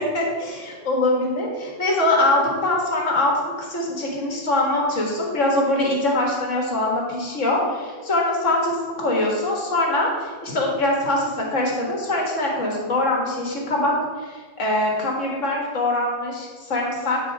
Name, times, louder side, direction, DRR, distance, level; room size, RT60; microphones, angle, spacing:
voice 1, 0.0-13.9 14.2-17.2, left 1 dB, 80° left, -1 dB, 2.0 m, -23 dB
9.1 x 4.8 x 4.7 m, 1.5 s
omnidirectional pair, 1.3 m